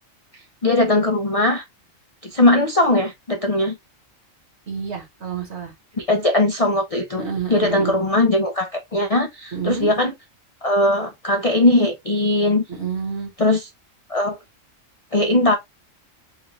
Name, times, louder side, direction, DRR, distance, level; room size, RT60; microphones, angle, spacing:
voice 1, 0.6-1.6 2.2-3.8 6.0-7.2 7.5-10.1 10.6-12.6 13.4-13.7 14.1-14.4 15.1-15.6, left 1 dB, 40° left, 0.5 m, -19 dB
voice 2, 4.7-5.7 7.2-8.0 9.5-9.9 12.7-13.3, right 6 dB, 55° right, 1.6 m, -28 dB
4.2 x 2.5 x 2.9 m
omnidirectional pair, 1.4 m